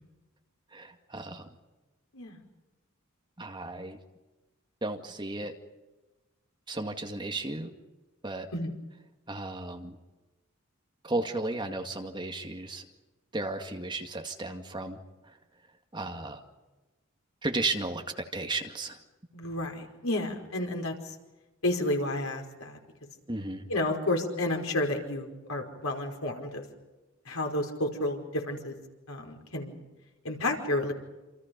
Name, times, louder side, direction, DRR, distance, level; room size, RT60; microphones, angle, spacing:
voice 1, 0.7-1.5 3.4-4.0 4.8-5.5 6.7-7.7 8.2-8.5 9.3-10.0 11.0-12.9 13.3-15.4 15.9-16.4 17.4-19.0 23.3-23.7, right 2 dB, 20° right, 4 dB, 2.1 m, -34 dB
voice 2, 19.3-21.1 21.6-22.8 23.7-26.6 27.2-28.7 29.1-29.8 30.2-30.9, left 1 dB, 90° left, 2 dB, 5.1 m, -31 dB
28.0 x 28.0 x 5.4 m, 1.1 s
head